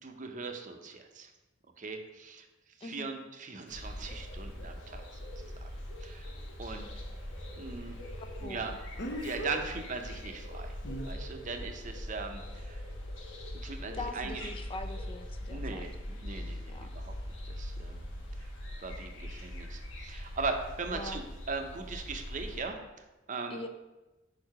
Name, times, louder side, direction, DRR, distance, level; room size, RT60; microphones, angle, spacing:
voice 1, 0.0-1.3 1.8-2.5 2.8-5.2 5.6-5.7 6.0-6.3 6.6-6.9 7.6-8.0 8.4-8.7 9.1-10.7 11.0-12.8 13.6-14.5 15.5-17.1 17.4-18.1 18.4-18.5 18.8-22.8 23.3-23.6, right 4 dB, 40° right, 5 dB, 0.6 m, -39 dB
voice 2, 2.8-3.1 8.2-8.8 14.0-15.9 16.7-16.9 20.9-21.2 23.5-23.7, left 2 dB, 30° left, 7 dB, 0.4 m, -42 dB
sound 1, 3.7-22.6, left 1 dB, 80° left, 1.1 m, -42 dB
Speech, 3.7-3.8 9.0-9.6 10.8-11.1, equal, 60° left, 0.8 m, -37 dB
5.3 x 4.6 x 4.7 m, 1.1 s
head